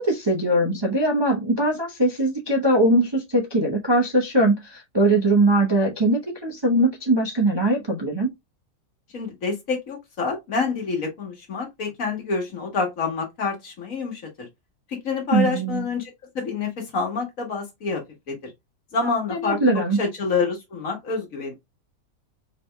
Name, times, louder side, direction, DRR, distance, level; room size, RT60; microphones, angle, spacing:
voice 1, 0.0-8.3 15.3-15.9 19.3-20.0, right 1 dB, 25° right, 0.6 m, -21 dB
voice 2, 9.1-14.5 14.9-18.5 18.9-21.5, left 4 dB, 55° left, 1.7 m, -27 dB
4.8 x 3.4 x 2.2 m
omnidirectional pair, 1.8 m